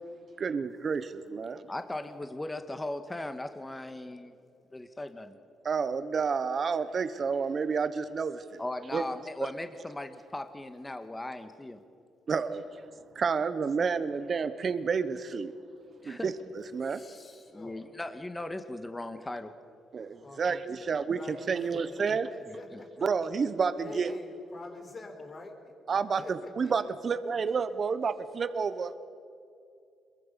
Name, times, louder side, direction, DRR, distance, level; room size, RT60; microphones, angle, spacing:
voice 1, 0.4-1.7 5.6-8.6 8.9-9.0 9.4-9.5 12.3-12.6 13.1-15.5 16.0-17.0 19.9-21.2 21.5-22.3 23.0-24.1 25.9-26.2 26.6-29.0, right 5 dB, 45° right, 12 dB, 1.1 m, -30 dB
voice 2, 1.7-4.3 4.7-5.3 8.6-11.8 16.0-16.3 17.5-19.5, left 1 dB, 15° left, 8 dB, 1.6 m, -38 dB
voice 3, 16.8-17.9 20.2-23.1 23.8-25.7 26.2-27.1, left 2 dB, 35° left, 4 dB, 4.2 m, -47 dB
26.5 x 22.5 x 7.0 m, 2.5 s
cardioid pair, 90°, 0 cm